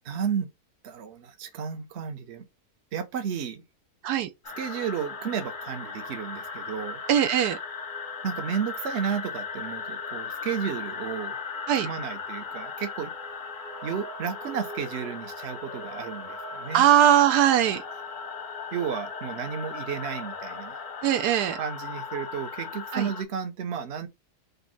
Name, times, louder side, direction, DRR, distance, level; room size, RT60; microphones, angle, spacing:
voice 1, 0.1-0.5 0.8-2.4 2.9-3.6 4.6-7.0 8.2-11.4 11.8-13.1 13.8-16.9 18.7-20.8 21.6-24.1, right 7 dB, 50° right, 0.9 m, -32 dB
sound 1, 4.4-23.2, left 5 dB, 45° left, 0.7 m, -37 dB
voice 2, 7.1-7.6 11.7-11.9 16.7-17.8 21.0-21.6 22.9-23.1, right 10 dB, 85° right, 1.2 m, -20 dB
5.3 x 2.2 x 3.9 m
omnidirectional pair, 1.7 m